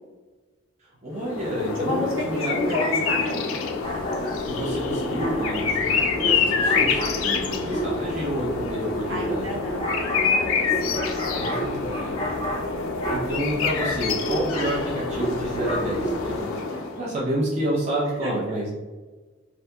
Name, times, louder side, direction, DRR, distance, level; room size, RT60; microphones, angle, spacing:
voice 1, 0.8-3.2 4.4-9.5 11.4-12.2 13.1-18.7, right 1 dB, 35° right, -6 dB, 0.5 m, -29 dB
sound 1, 1.1-17.1, left 5 dB, 85° left, 0.4 m, -27 dB
voice 2, 1.8-3.4 9.1-12.0 18.2-18.3, left 1 dB, 75° right, -4 dB, 0.9 m, -31 dB
sound 2, 3.8-16.4, right 1 dB, 25° left, 0.5 m, -32 dB
2.7 x 2.6 x 2.2 m, 1.3 s
head